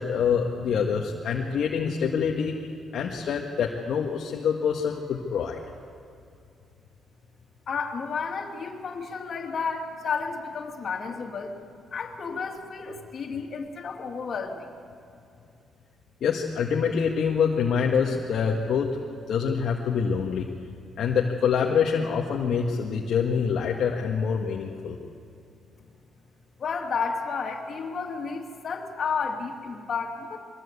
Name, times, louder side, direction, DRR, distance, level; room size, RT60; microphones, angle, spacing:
voice 1, 0.0-2.7 2.9-5.6 16.2-19.0 19.3-20.5 21.0-25.0, left 6 dB, 70° left, -1 dB, 1.7 m, -25 dB
voice 2, 7.7-11.5 11.9-14.7 26.6-30.4, left 5 dB, 50° left, 2 dB, 2.8 m, -32 dB
23.0 x 17.5 x 8.5 m, 2.5 s
cardioid pair, 90°, 0 cm